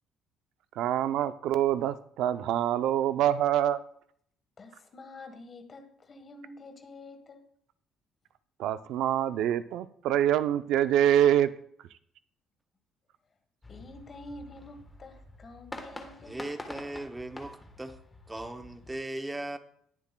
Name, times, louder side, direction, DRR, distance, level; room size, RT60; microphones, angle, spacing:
voice 1, 0.8-3.8 8.6-11.5, right 11 dB, 70° right, 12 dB, 0.5 m, -25 dB
voice 2, 4.6-7.5 13.7-16.4, left 2 dB, 30° left, 6 dB, 1.3 m, -48 dB
sound 1, 13.6-19.0, left 2 dB, 10° left, 1.2 m, -46 dB
voice 3, 16.2-18.0 18.3-19.6, right 1 dB, 10° right, 7 dB, 0.7 m, -38 dB
19.5 x 7.2 x 2.2 m, 0.65 s
cardioid pair, 170°, 0 cm